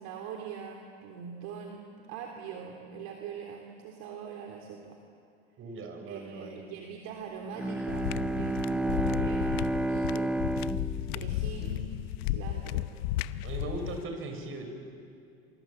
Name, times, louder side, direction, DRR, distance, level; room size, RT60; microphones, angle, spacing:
voice 1, 0.0-5.0 6.1-10.9 11.1-11.8 12.2-13.0, right 7 dB, 60° right, 2 dB, 3.3 m, -43 dB
voice 2, 5.6-6.6 13.4-14.7, right 3 dB, 40° right, 5 dB, 6.5 m, -39 dB
Bowed string instrument, 7.5-12.3, right 2 dB, 5° right, 0.6 m, -31 dB
sound 1, 7.9-14.0, left 15 dB, 70° left, 0.9 m, -34 dB
27.5 x 24.5 x 8.6 m, 2.5 s
hypercardioid pair, 95°, 32 cm